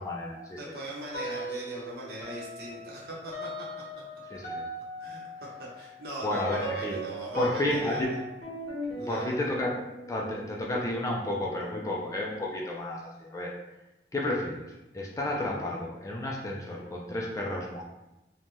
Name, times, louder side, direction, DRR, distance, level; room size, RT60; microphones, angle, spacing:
voice 1, 0.0-0.8 4.3-4.7 6.2-7.0 7.3-8.1 9.0-9.7 10.1-13.5 14.1-17.8, left 1 dB, 20° left, -2 dB, 0.3 m, -32 dB
voice 2, 0.6-3.5 5.0-5.2 5.8-8.0 9.0-9.3, right 1 dB, 60° right, -5 dB, 0.8 m, -39 dB
sound 1, 1.1-1.9 2.2-12.5, equal, 45° left, 0.8 m, -39 dB
2.6 x 2.2 x 3.1 m, 0.97 s
head